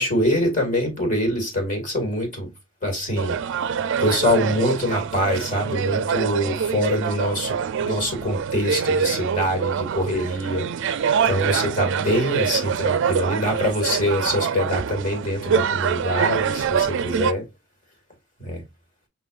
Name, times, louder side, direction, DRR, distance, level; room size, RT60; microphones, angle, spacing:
voice 1, 0.0-2.5 2.8-3.4 4.0-7.5 7.8-10.7 11.3-17.4 18.4-18.6, left 1 dB, 40° left, 2.1 m, -24 dB
sound 1, 3.2-17.3, right 7 dB, 60° right, 0.4 m, -25 dB
5.6 x 3.8 x 2.4 m
head